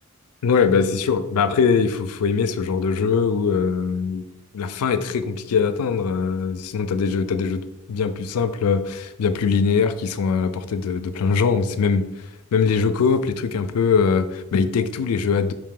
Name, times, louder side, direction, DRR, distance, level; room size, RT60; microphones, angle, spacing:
voice 1, 0.4-4.2 4.5-7.6 7.9-12.1 12.5-15.5, left 5 dB, 85° left, 11 dB, 0.4 m, -21 dB
4.7 x 2.8 x 3.7 m, 0.91 s
head